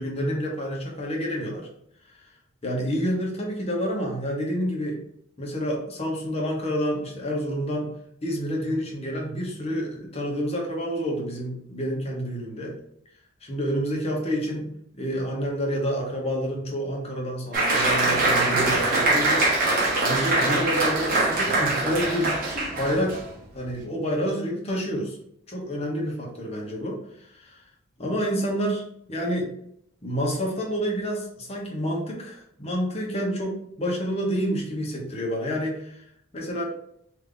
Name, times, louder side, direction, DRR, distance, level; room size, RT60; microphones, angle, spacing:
voice 1, 0.0-1.7 2.6-5.0 5.4-7.9 8.2-12.8 13.4-19.5 20.0-22.4 22.8-23.2 23.5-25.2 25.5-27.6 28.0-28.8 29.1-29.5 30.0-36.0 36.3-36.6, equal, 35° left, -2 dB, 1.0 m, -28 dB
Applause, 17.5-23.3, right 2 dB, 50° right, 1.0 m, -23 dB
3.5 x 2.7 x 3.7 m, 0.73 s
head